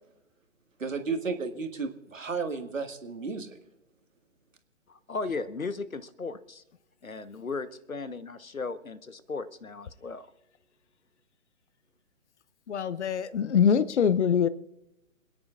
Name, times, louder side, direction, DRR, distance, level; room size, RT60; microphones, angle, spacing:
voice 1, 0.8-3.5, right 4 dB, 70° right, 6 dB, 1.9 m, -33 dB
voice 2, 4.9-6.6 7.0-10.3, left 4 dB, 85° left, 13 dB, 1.2 m, -36 dB
voice 3, 12.7-14.5, left 7 dB, 55° left, 17 dB, 0.8 m, -23 dB
27.0 x 10.0 x 2.4 m, 0.87 s
figure-of-eight pair, 135°, 40 cm